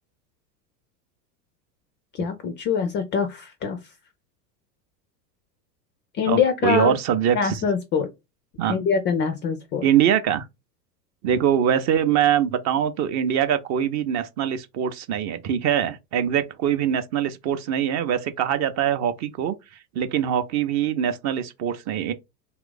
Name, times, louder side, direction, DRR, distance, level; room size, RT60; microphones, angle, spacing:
voice 1, 2.1-3.8 6.2-6.9 7.3-8.1 8.7-9.8, left 6 dB, 25° left, 0.3 m, -24 dB
voice 2, 6.2-7.6 8.6-8.8 9.8-10.5 11.2-19.6 19.9-22.1, right 9 dB, 35° right, 0.5 m, -23 dB
2.8 x 2.4 x 3.8 m
hypercardioid pair, 95°, 50 cm